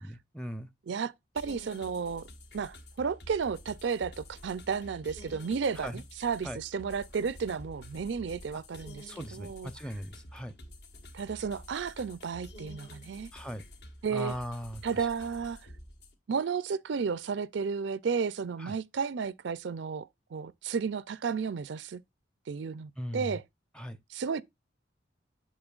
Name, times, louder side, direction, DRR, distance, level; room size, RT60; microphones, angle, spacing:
voice 1, 0.0-0.7 5.8-6.0 6.4-6.6 9.1-10.5 13.3-13.6 14.1-14.8 18.6-18.7 23.0-23.4 23.7-24.0, equal, 5° left, 0.6 m, -39 dB
voice 2, 0.9-2.3 2.5-9.7 11.1-13.3 14.0-14.4 14.8-15.7 16.3-22.0 22.5-23.4 24.1-24.4, right 6 dB, 70° right, 0.4 m, -33 dB
sound 1, 1.4-16.1, left 1 dB, 60° left, 1.3 m, -50 dB
8.8 x 6.5 x 2.4 m
head